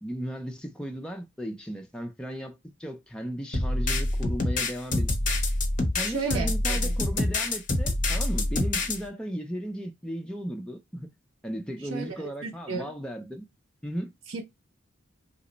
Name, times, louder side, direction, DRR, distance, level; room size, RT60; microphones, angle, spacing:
voice 1, 0.0-5.2 6.0-11.1 11.4-13.5 13.8-14.1, equal, 5° left, 0.4 m, -36 dB
sound 1, 3.5-9.0, left 2 dB, 40° left, 0.7 m, -26 dB
voice 2, 6.0-6.9 11.9-12.9 14.3-14.4, right 4 dB, 80° right, 0.5 m, -33 dB
2.9 x 2.1 x 3.9 m
head